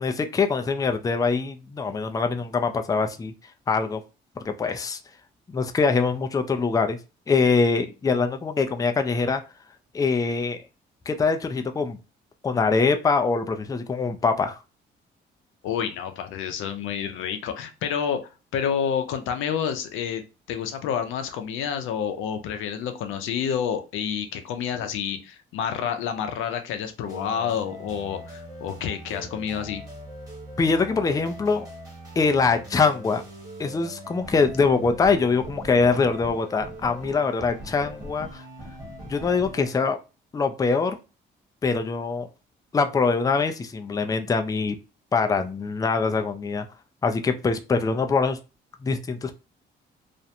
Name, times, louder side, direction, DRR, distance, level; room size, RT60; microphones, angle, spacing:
voice 1, 0.0-3.3 3.7-4.0 4.4-5.0 5.5-7.0 7.3-9.4 9.9-10.6 11.1-12.0 12.4-14.6 30.6-31.7 32.2-33.2 33.6-38.4 39.1-40.0 40.3-41.0 41.6-42.3 42.7-44.8 45.1-46.6 47.0-48.4 48.8-49.4, left 4 dB, 20° left, 0.4 m, -23 dB
voice 2, 15.6-18.2 18.5-20.2 20.5-29.8, left 8 dB, 85° left, 0.5 m, -29 dB
sound 1, 27.0-39.7, right 1 dB, 15° right, 1.2 m, -41 dB
2.5 x 2.1 x 2.8 m
cardioid pair, 90°, 20 cm